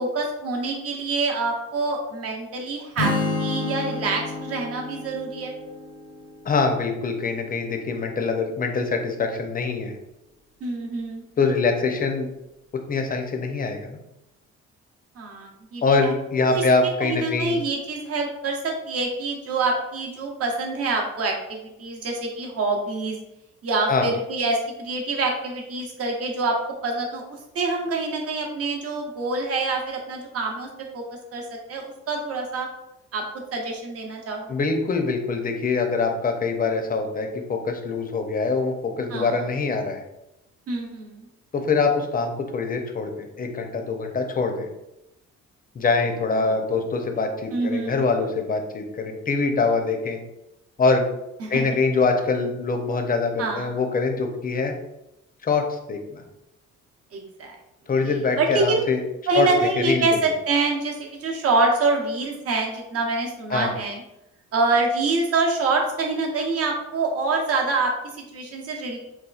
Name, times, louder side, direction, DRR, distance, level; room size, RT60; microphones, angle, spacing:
voice 1, 0.0-3.1 3.4-5.5 10.6-11.2 15.2-16.1 16.5-23.2 23.6-26.6 26.8-27.2 27.5-30.7 30.9-31.0 31.3-32.7 33.1-33.2 33.5-34.5 39.1-39.4 40.7-41.2 46.3-46.6 47.5-48.0 51.4-51.7 53.4-53.7 57.1-57.6 58.0-58.8 59.3-64.0 64.5-69.0, right 3 dB, 50° right, 0 dB, 0.8 m, -26 dB
Strum, 3.0-7.1, left 2 dB, 70° left, 0.7 m, -30 dB
voice 2, 6.4-10.0 11.4-12.3 12.9-14.0 15.8-17.6 23.9-24.1 34.5-40.0 41.5-44.7 45.7-50.2 50.8-51.1 51.5-54.7 55.4-56.2 57.9-59.0 59.3-59.5 59.8-60.1 63.5-63.7, left 4 dB, 30° left, 4 dB, 0.5 m, -24 dB
4.2 x 2.3 x 2.4 m, 0.89 s
cardioid pair, 90°, 30 cm